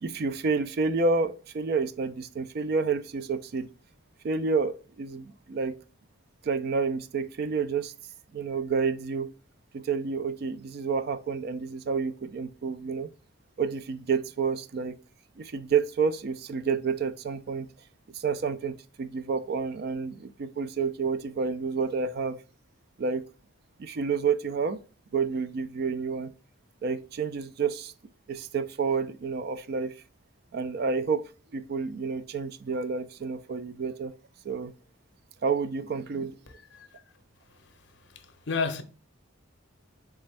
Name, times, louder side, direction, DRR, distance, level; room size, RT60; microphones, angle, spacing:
voice 1, 0.0-3.7 4.2-5.8 6.4-7.9 8.3-9.3 9.7-13.1 13.6-15.0 15.4-17.7 18.1-22.4 23.0-23.3 23.8-24.8 25.1-26.3 26.8-27.9 28.3-29.9 30.5-34.1 34.4-34.7 35.4-36.4, right 5 dB, 50° right, 0.3 m, -29 dB
voice 2, 38.1-38.8, left 4 dB, 60° left, 0.6 m, -31 dB
4.1 x 3.3 x 3.3 m
head